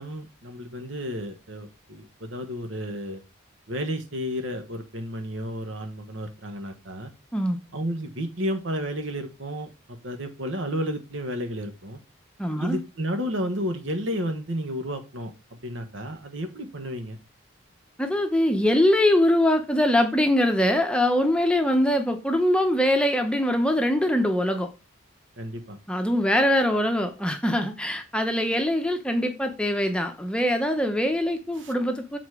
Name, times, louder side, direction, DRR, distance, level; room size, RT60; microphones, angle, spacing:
voice 1, 0.0-3.2 3.7-7.1 7.7-12.0 12.6-17.2 25.4-25.8 31.6-31.7, equal, 75° right, 1.3 m, -32 dB
voice 2, 12.4-12.8 18.0-24.7 25.9-32.2, left 1 dB, 5° left, 0.7 m, -23 dB
7.1 x 4.0 x 4.8 m
head